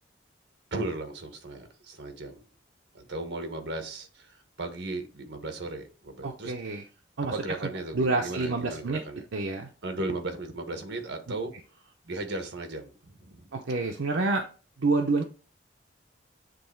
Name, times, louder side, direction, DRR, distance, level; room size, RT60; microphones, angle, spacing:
voice 1, 0.7-2.4 2.9-6.8 7.3-9.2 9.8-13.9, right 2 dB, 75° right, 1.3 m, -36 dB
voice 2, 6.2-6.8 7.2-7.3 7.6-7.7 7.9-9.0 9.3-9.7 13.5-14.5 14.8-15.2, right 3 dB, 90° right, 0.7 m, -27 dB
7.7 x 3.2 x 4.3 m
head